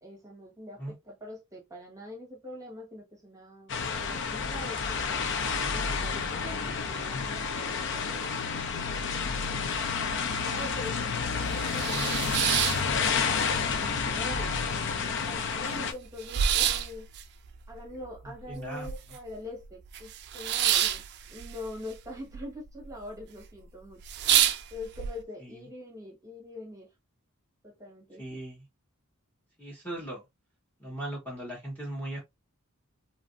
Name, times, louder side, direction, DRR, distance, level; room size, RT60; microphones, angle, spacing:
voice 1, 0.0-5.2 5.7-12.1 12.7-17.1 17.7-21.0 21.3-24.0 24.7-26.9 27.6-28.4, left 1 dB, 15° right, 1.0 m, -44 dB
sound 1, 3.7-15.9, left 5 dB, 55° left, 0.5 m, -30 dB
sound 2, 10.3-10.4 10.8-10.9 11.3-13.5 13.8-14.6 14.9-15.0 15.2-19.3 19.6-22.4 22.7-23.2 23.6-23.7 24.0-25.1, right 10 dB, 50° right, 0.3 m, -28 dB
voice 2, 18.2-18.9 25.4-25.6 28.2-28.7 29.6-30.2 30.8-32.2, right 1 dB, 10° left, 0.9 m, -38 dB
2.8 x 2.5 x 2.5 m
head